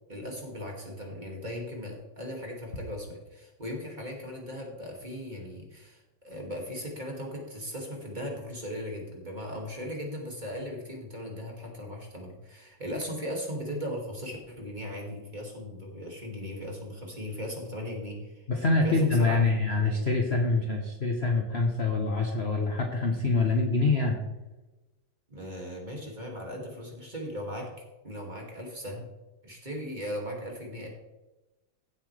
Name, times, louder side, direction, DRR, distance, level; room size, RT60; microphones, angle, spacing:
voice 1, 0.1-18.4 18.8-19.5 25.3-27.7 28.0-29.1 29.4-30.9, equal, 20° right, -1 dB, 2.4 m, -38 dB
voice 2, 18.5-24.2, left 3 dB, 40° left, 2 dB, 1.1 m, -25 dB
16.5 x 7.7 x 3.4 m, 1.1 s
omnidirectional pair, 2.3 m